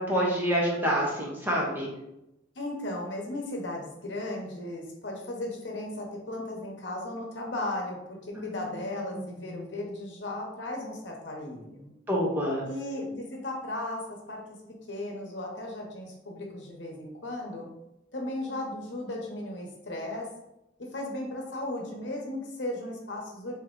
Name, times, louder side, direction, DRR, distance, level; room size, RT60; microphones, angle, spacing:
voice 1, 0.0-1.9 8.4-9.6 12.1-12.6, equal, 10° right, -4 dB, 0.9 m, -28 dB
voice 2, 2.5-11.9 12.6-14.4 14.9-17.7 18.1-20.3 20.8-23.5, left 1 dB, 65° left, 0 dB, 0.9 m, -36 dB
3.5 x 2.9 x 3.8 m, 0.88 s
head